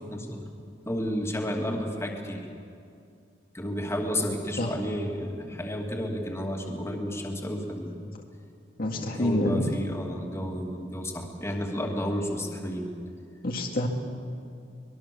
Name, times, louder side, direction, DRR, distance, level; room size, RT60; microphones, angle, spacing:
voice 1, 0.1-0.4 0.9-2.5 3.5-8.1 8.9-12.9, equal, 15° left, 1 dB, 2.6 m, -31 dB
voice 2, 8.8-9.6 13.4-13.9, left 1 dB, 55° left, 1 dB, 2.1 m, -27 dB
24.0 x 21.5 x 7.0 m, 2.4 s
head